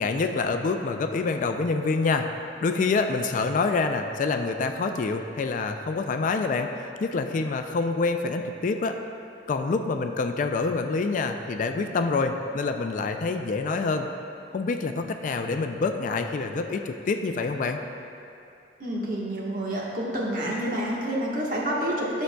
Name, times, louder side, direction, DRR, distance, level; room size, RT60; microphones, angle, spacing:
voice 1, 0.0-2.3 2.6-9.0 9.5-14.1 14.5-17.8, left 4 dB, 45° left, 6 dB, 0.3 m, -26 dB
voice 2, 18.8-22.2, right 1 dB, 50° right, -4 dB, 1.3 m, -28 dB
11.0 x 6.4 x 2.3 m, 2.6 s
head